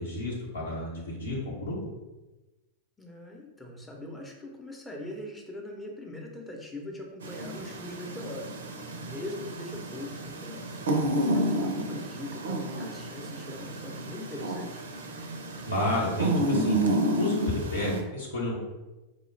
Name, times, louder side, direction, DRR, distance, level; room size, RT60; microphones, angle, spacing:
voice 1, 0.0-1.8 15.6-16.8 17.2-18.6, left 1 dB, 70° left, -5 dB, 1.0 m, -30 dB
voice 2, 3.0-8.6 9.0-14.9, left 1 dB, 10° left, -1 dB, 0.8 m, -41 dB
sound 1, 7.2-18.0, right 1 dB, 65° right, 0.5 m, -31 dB
4.8 x 2.3 x 3.3 m, 1.1 s
figure-of-eight pair, 90°, 0 cm